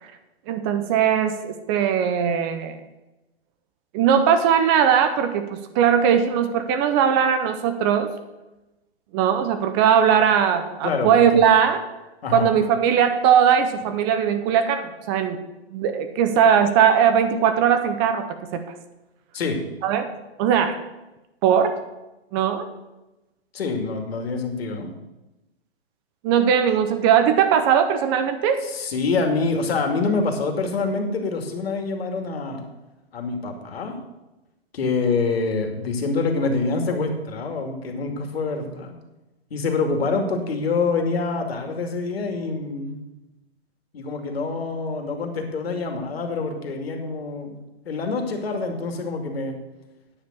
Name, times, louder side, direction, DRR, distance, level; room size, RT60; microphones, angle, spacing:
voice 1, 0.5-2.8 3.9-8.1 9.1-11.8 12.3-15.4 15.7-18.3 18.5-18.6 19.8-20.1 20.4-20.8 21.4-21.8 22.3-22.7 26.2-28.6, right 8 dB, 20° right, 8 dB, 0.6 m, -19 dB
voice 2, 10.8-11.4 12.2-12.5 19.3-19.6 23.5-24.9 28.6-32.6 33.1-34.0 34.7-38.9 39.5-43.0 43.9-47.6 47.8-49.6, left 4 dB, 65° left, 4 dB, 2.5 m, -26 dB
9.6 x 6.7 x 7.3 m, 1.0 s
hypercardioid pair, 145°, 32 cm